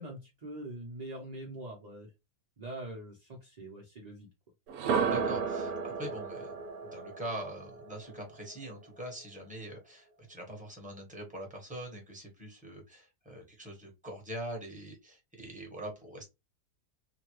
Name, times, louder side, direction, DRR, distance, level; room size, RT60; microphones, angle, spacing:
voice 1, 0.0-2.1 2.6-4.3, right 1 dB, 55° right, -2 dB, 0.4 m, -43 dB
sound 1, 4.7-8.7, right 6 dB, 75° right, 1.0 m, -33 dB
voice 2, 4.9-6.6 6.8-16.3, right 1 dB, 5° right, 1 dB, 1.0 m, -43 dB
3.1 x 2.2 x 3.0 m, 0.23 s
omnidirectional pair, 1.7 m